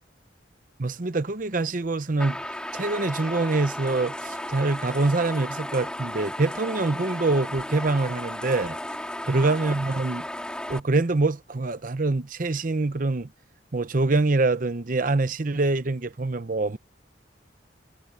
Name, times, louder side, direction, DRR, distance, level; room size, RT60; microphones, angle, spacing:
voice 1, 0.8-2.4 2.7-8.8 9.3-10.2 10.7-13.3 13.7-16.8, right 3 dB, 45° right, 0.8 m, -25 dB
sound 1, 2.2-10.8, left 1 dB, 5° left, 2.6 m, -34 dB
head